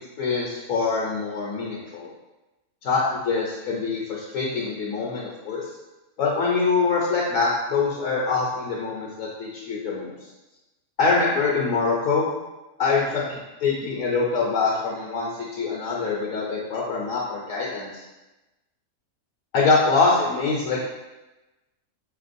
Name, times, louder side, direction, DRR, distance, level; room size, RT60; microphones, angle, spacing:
voice 1, 0.0-2.1 2.8-5.7 6.2-10.1 11.0-12.3 12.8-18.0 19.5-20.8, left 4 dB, 70° left, -3 dB, 0.9 m, -24 dB
4.5 x 2.9 x 2.5 m, 1.1 s
omnidirectional pair, 1.6 m